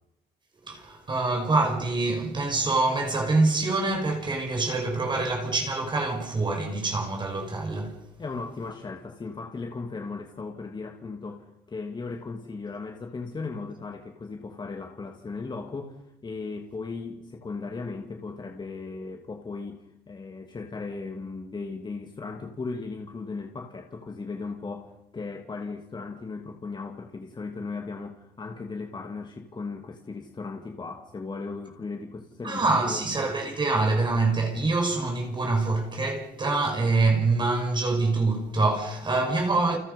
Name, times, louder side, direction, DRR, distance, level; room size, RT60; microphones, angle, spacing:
voice 1, 0.7-8.0 32.4-39.8, right 3 dB, 25° right, 5.7 m, -25 dB
voice 2, 8.2-33.0, left 4 dB, 25° left, 2.8 m, -37 dB
30.0 x 29.0 x 5.6 m
cardioid pair, 110°, 17 cm